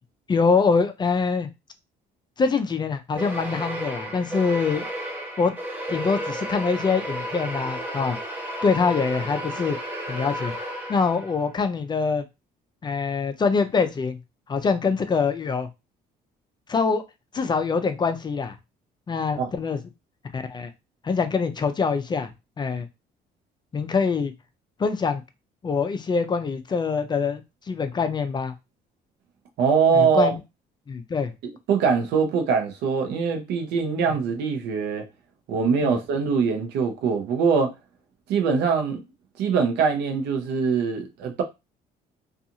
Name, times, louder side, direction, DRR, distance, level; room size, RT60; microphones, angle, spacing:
voice 1, 0.3-1.5 2.4-4.9 5.4-5.5 5.9-8.2 8.6-9.8 10.1-10.5 10.9-12.2 12.8-14.2 14.5-15.7 16.7-17.0 17.3-18.6 19.1-19.8 20.3-20.7 21.0-22.3 22.6-22.9 23.7-24.3 24.8-25.2 25.6-27.4 27.7-28.5 29.9-30.3 30.9-31.3 35.8-36.0, left 5 dB, 25° left, 0.4 m, -24 dB
sound 1, 3.2-11.5, right 1 dB, 10° right, 0.7 m, -33 dB
voice 2, 29.6-30.3 31.7-35.1 35.5-37.7 38.3-39.0 39.4-41.4, right 5 dB, 80° right, 0.7 m, -22 dB
2.5 x 2.4 x 2.7 m
cardioid pair, 110°, 17 cm